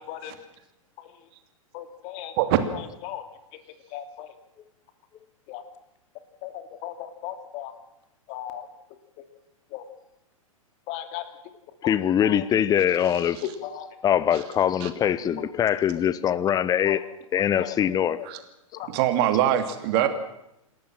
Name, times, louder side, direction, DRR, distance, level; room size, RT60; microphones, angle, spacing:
voice 1, 1.7-2.3 3.1-3.2 3.9-4.3 5.5-5.6 6.4-6.5 6.8-6.9 7.2-7.7 8.3-8.6 9.7-9.8 10.9-11.2 13.6-13.9 16.9-17.0 17.6-17.7 18.1-18.2 18.7-18.9 19.9-20.1, left 12 dB, 40° left, 8 dB, 2.6 m, -35 dB
voice 2, 11.8-13.4 14.0-17.0 17.3-18.2, left 9 dB, 20° left, 18 dB, 0.9 m, -23 dB
voice 3, 18.9-20.1, right 12 dB, 45° right, 8 dB, 2.7 m, -23 dB
28.0 x 13.0 x 7.5 m, 0.85 s
figure-of-eight pair, 110°, 18 cm